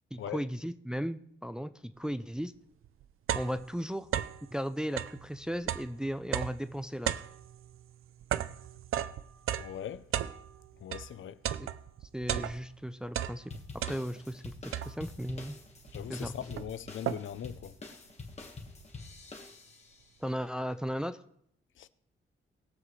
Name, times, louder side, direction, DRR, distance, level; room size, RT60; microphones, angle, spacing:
voice 1, 0.1-2.5 3.3-4.1 4.5-7.1 11.6-11.7 12.1-13.5 13.8-15.6 16.1-16.3 20.2-21.2, equal, 5° right, 0.4 m, -36 dB
sound 1, 2.4-2.5 2.8-4.5 4.9-11.1 11.4-12.8 13.1-14.3 14.7-15.3 15.9-16.0 16.2-17.5, right 10 dB, 85° right, 0.6 m, -35 dB
voice 2, 9.6-10.1 10.8-11.4 15.9-17.7 21.8-21.9, left 10 dB, 70° left, 0.6 m, -40 dB
sound 2, 13.5-20.0, left 3 dB, 30° left, 1.6 m, -46 dB
20.5 x 7.5 x 3.2 m
wide cardioid pair, 160°, 21 cm